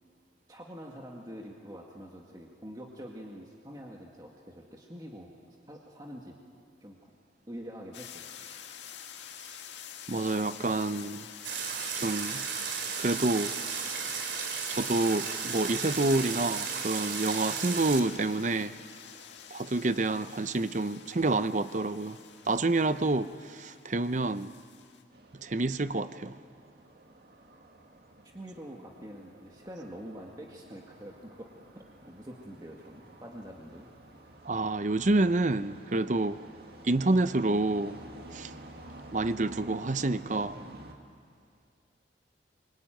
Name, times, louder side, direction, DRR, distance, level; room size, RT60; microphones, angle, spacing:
voice 1, 0.5-6.4 6.8-7.1 7.5-8.2 28.2-33.9, equal, 20° right, 2.0 m, -45 dB
sound 1, 7.9-25.0, left 8 dB, 75° left, 1.9 m, -47 dB
voice 2, 10.1-11.3 12.0-12.4 13.0-13.5 14.7-18.7 19.5-22.2 22.5-24.5 25.4-26.4 34.5-36.4 36.8-38.0 38.3-38.5 39.1-40.6, right 2 dB, 40° right, 0.7 m, -28 dB
sound 2, 11.4-18.0, right 6 dB, 75° right, 2.9 m, -34 dB
sound 3, 25.1-40.9, right 1 dB, 55° right, 2.2 m, -50 dB
26.0 x 24.0 x 9.2 m
head